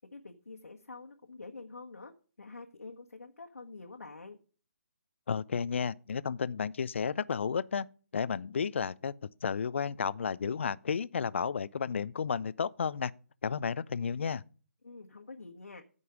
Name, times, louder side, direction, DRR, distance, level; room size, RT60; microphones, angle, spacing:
voice 1, 0.1-2.1 2.4-4.4 14.8-15.8, left 3 dB, 70° left, 1.4 m, -47 dB
voice 2, 5.3-7.9 8.1-9.1 9.4-13.1 13.4-14.4, left 6 dB, 55° left, 0.5 m, -32 dB
15.0 x 5.5 x 4.9 m
figure-of-eight pair, 145°, 8 cm